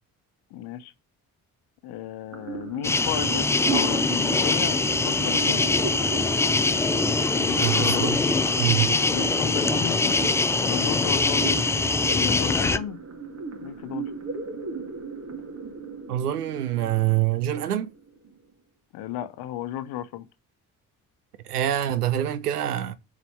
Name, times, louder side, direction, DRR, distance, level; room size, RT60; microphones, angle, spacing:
voice 1, 0.5-0.9 1.8-5.7 7.3-8.1 9.0-10.2 10.6-11.6 12.1-13.0 13.6-14.1 18.9-20.3, left 12 dB, 55° left, 1.0 m, -34 dB
sound 1, 2.3-18.3, right 5 dB, 35° right, 2.2 m, -36 dB
sound 2, 2.8-12.8, left 3 dB, 5° left, 0.3 m, -23 dB
voice 2, 7.6-8.2 8.6-9.0 16.1-17.9 21.4-23.0, right 12 dB, 80° right, 0.7 m, -25 dB
6.9 x 5.0 x 5.9 m
figure-of-eight pair, 45°, 45 cm